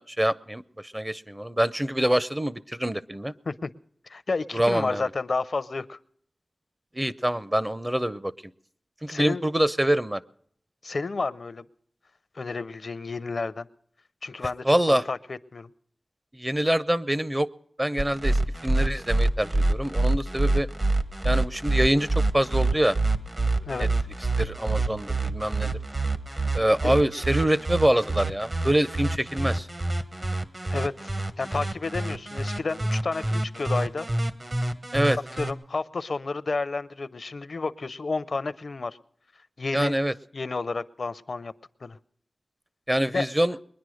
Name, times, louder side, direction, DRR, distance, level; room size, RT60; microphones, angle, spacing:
voice 1, 0.0-3.3 4.5-5.0 6.9-8.3 9.0-10.2 14.6-15.0 16.3-17.5 17.8-20.7 21.2-23.0 23.5-23.9 24.4-25.8 26.5-29.7 34.9-35.2 39.7-40.1 42.9-43.6, right 1 dB, 15° right, 15 dB, 0.6 m, -25 dB
voice 2, 4.1-6.0 9.1-9.4 10.8-11.6 12.3-13.7 14.2-15.7 23.7-23.9 26.3-26.5 26.8-26.9 30.7-31.1 31.4-34.1 35.3-39.0 39.6-40.0 40.3-41.5 41.8-42.0 43.1-43.3, left 3 dB, 70° left, 16 dB, 0.5 m, -31 dB
sound 1, 18.0-35.5, right 2 dB, 45° right, 1.2 m, -26 dB
21.5 x 10.0 x 6.3 m, 0.64 s
wide cardioid pair, 60°, 0 cm